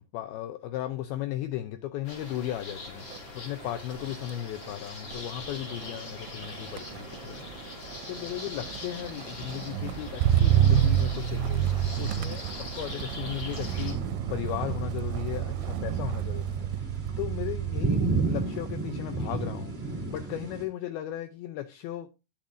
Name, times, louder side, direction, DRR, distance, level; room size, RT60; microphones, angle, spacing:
voice 1, 0.1-22.1, left 12 dB, 85° left, 2.2 m, -36 dB
sound 1, 2.0-13.9, left 2 dB, 35° left, 2.4 m, -42 dB
Motor vehicle (road), 3.0-3.3 3.6-18.1 18.5-18.9, right 11 dB, 90° right, 2.8 m, -29 dB
sound 2, 13.6-20.6, right 3 dB, 60° right, 0.6 m, -33 dB
13.0 x 8.6 x 2.5 m
omnidirectional pair, 4.9 m